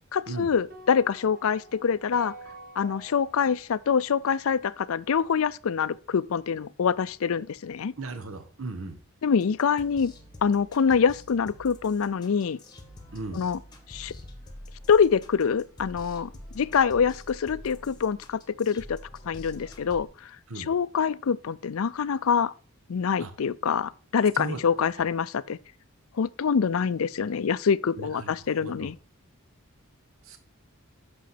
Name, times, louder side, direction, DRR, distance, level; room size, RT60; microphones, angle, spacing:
voice 1, 0.1-2.3 2.8-7.9 9.2-10.1 10.4-12.6 13.3-13.6 13.9-14.1 14.9-19.0 19.3-20.3 20.6-22.5 22.9-25.6 26.1-29.0, left 6 dB, 70° left, 0.4 m, -25 dB
sound 1, 0.7-5.0, right 2 dB, 45° right, 2.0 m, -47 dB
voice 2, 8.0-9.0 13.1-13.5 20.5-20.7 23.2-23.3 24.3-24.6 25.0-25.1 28.0-28.9 30.2-30.4, right 3 dB, 65° right, 1.1 m, -37 dB
sound 2, 9.4-20.0, left 1 dB, 20° left, 1.4 m, -47 dB
8.5 x 6.3 x 5.8 m
head